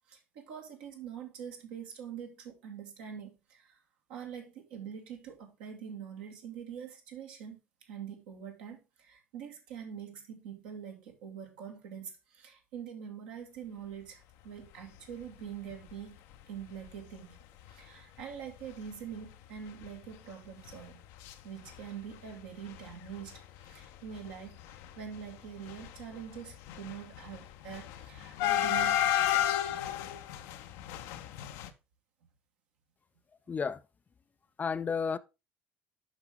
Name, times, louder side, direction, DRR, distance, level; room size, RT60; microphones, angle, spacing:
voice 1, 0.1-3.8 4.1-16.2 16.5-17.4 17.7-21.0 21.4-29.4, right 8 dB, 70° right, 2.0 m, -44 dB
sound 1, 15.7-15.9 16.4-16.5 16.7-16.9 17.7-17.8 18.2-18.4 18.6-18.8 19.1-21.3 21.6-22.3 22.6-31.7, left 12 dB, 65° left, 0.7 m, -33 dB
voice 2, 33.5-33.8 34.6-35.2, left 5 dB, 25° left, 0.5 m, -32 dB
11.0 x 4.8 x 3.6 m
figure-of-eight pair, 60°, 6 cm